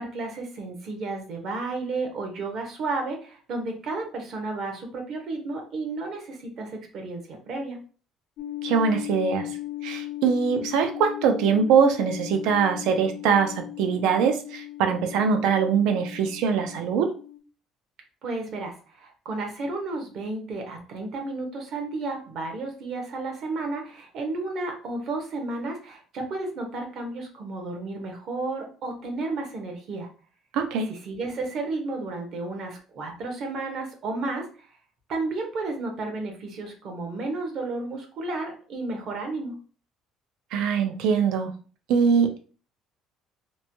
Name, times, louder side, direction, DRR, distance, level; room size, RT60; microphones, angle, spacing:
voice 1, 0.0-7.8 18.2-30.1 30.9-34.5 35.1-39.5, right 3 dB, 50° right, 2 dB, 0.8 m, -32 dB
sound 1, 8.4-17.4, left 15 dB, 65° left, 0.4 m, -37 dB
voice 2, 8.6-9.5 9.8-17.1 30.5-30.9 40.5-41.5 41.9-42.4, right 6 dB, 80° right, 6 dB, 0.5 m, -22 dB
3.0 x 2.2 x 2.7 m, 0.39 s
cardioid pair, 160°, 0 cm